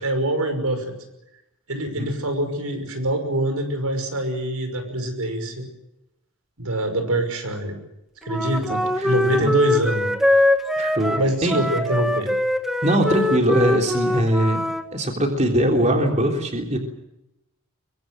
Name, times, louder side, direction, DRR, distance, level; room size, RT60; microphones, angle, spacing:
voice 1, 0.0-0.9 1.7-5.7 6.6-7.8 8.2-10.1 11.1-12.3, right 1 dB, 90° right, 7 dB, 5.9 m, -24 dB
Wind instrument woodwind instrument, 8.3-14.8, left 1 dB, ahead, 1.5 m, -22 dB
voice 2, 8.7-9.1 9.4-9.5 10.8-11.6 12.8-14.6 14.9-16.8, right 1 dB, 30° right, 2 dB, 3.5 m, -21 dB
24.0 x 23.5 x 7.8 m, 0.89 s
head